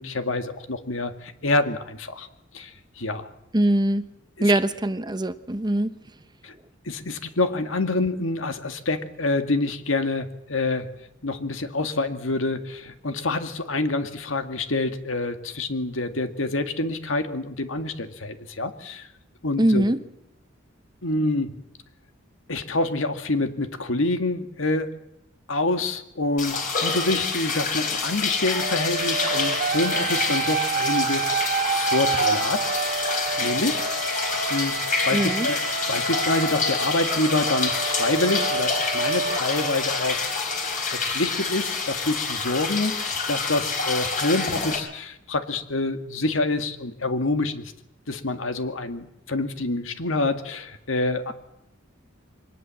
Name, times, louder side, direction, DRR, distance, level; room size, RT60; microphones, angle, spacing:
voice 1, 0.0-2.3 2.5-3.3 4.4-4.5 6.4-6.5 6.9-10.9 11.2-19.1 19.4-19.9 21.0-21.6 22.5-24.9 25.5-33.0 33.4-33.8 34.5-35.6 35.9-40.3 40.8-47.7 48.1-51.3, left 2 dB, 80° left, 8 dB, 2.0 m, -27 dB
voice 2, 3.5-4.1 4.4-5.9 19.6-20.0 35.1-35.5, right 1 dB, 20° right, 11 dB, 1.0 m, -22 dB
sound 1, 26.4-44.8, left 4 dB, 45° left, 4.8 m, -27 dB
sound 2, 28.6-40.4, right 5 dB, 50° right, 1.3 m, -29 dB
24.0 x 19.5 x 7.7 m, 0.84 s
head